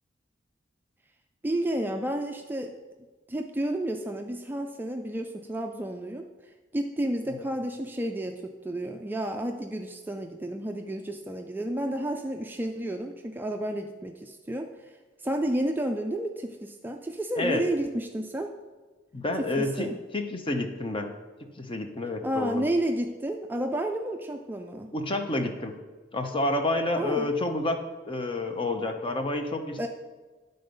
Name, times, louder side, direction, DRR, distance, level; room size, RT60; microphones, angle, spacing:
voice 1, 1.4-2.7 3.3-6.3 6.7-14.9 15.2-18.5 19.4-20.0 22.2-24.9 27.0-27.3 29.8-29.9, right 1 dB, 10° right, 4 dB, 0.3 m, -31 dB
voice 2, 19.1-19.9 20.1-21.1 21.6-22.6 24.9-25.8 26.1-27.8 28.1-29.9, left 2 dB, 30° left, 5 dB, 0.7 m, -29 dB
9.4 x 3.9 x 5.3 m, 1.3 s
head